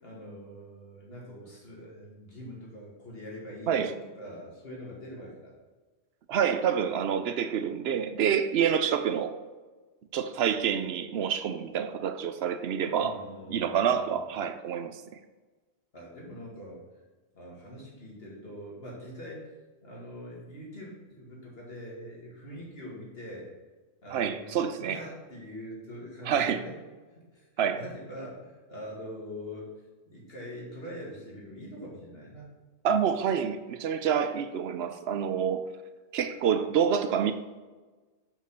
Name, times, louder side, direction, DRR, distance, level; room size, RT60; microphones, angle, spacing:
voice 1, 0.0-5.5 13.0-14.2 15.9-16.8 17.3-19.5 19.8-23.5 24.0-26.7 27.1-29.7 30.1-32.5, equal, 60° left, 2.4 m, -43 dB
voice 2, 6.3-9.4 10.1-13.2 13.5-15.0 24.1-25.0 26.3-26.6 27.6-27.8 32.8-35.7 36.1-37.3, right 8 dB, 70° right, 0.8 m, -27 dB
6.0 x 5.8 x 5.7 m
omnidirectional pair, 1.1 m